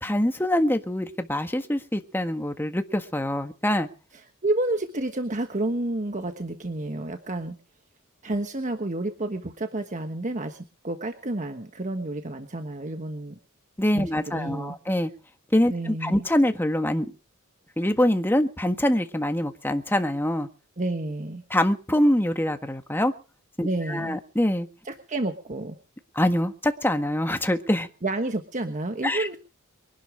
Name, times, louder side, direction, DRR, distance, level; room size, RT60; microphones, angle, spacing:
voice 1, 0.0-3.9 13.8-15.1 15.5-17.1 17.8-20.5 21.5-23.1 23.6-24.7 26.1-27.9 29.0-29.3, left 1 dB, 10° left, 7 dB, 1.6 m, -24 dB
voice 2, 4.4-7.5 8.2-13.3 13.9-14.8 15.7-16.2 20.8-21.4 23.6-24.2 24.8-25.8 28.0-29.4, right 2 dB, 35° right, 6 dB, 1.4 m, -30 dB
23.5 x 11.5 x 5.1 m, 0.35 s
head